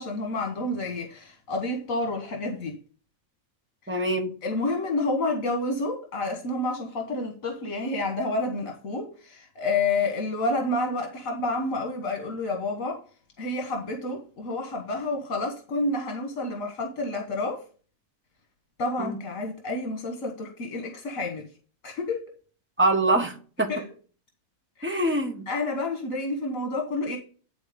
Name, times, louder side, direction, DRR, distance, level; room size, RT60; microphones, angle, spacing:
voice 1, 0.0-2.8 3.8-4.0 4.4-13.0 13.4-17.6 18.8-21.5 21.8-22.3 23.7-23.9 24.8-25.2 25.5-27.2, left 2 dB, 70° left, 1.6 m, -29 dB
voice 2, 3.9-4.3 19.0-19.2 22.8-23.7 24.8-25.4, right 2 dB, 10° right, 1.2 m, -24 dB
9.8 x 4.0 x 5.0 m
omnidirectional pair, 1.4 m